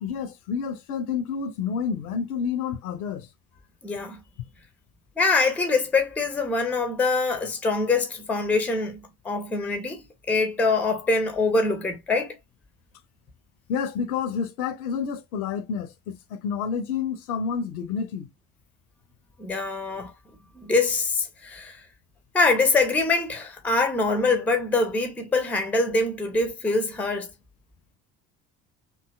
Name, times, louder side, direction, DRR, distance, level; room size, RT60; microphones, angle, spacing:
voice 1, 0.0-3.3 13.7-18.3, left 6 dB, 65° left, 0.6 m, -29 dB
voice 2, 3.8-4.2 5.2-12.4 19.4-20.1 20.5-21.8 22.3-27.3, left 3 dB, 5° left, 0.5 m, -24 dB
2.6 x 2.3 x 2.2 m
figure-of-eight pair, 55°, 47 cm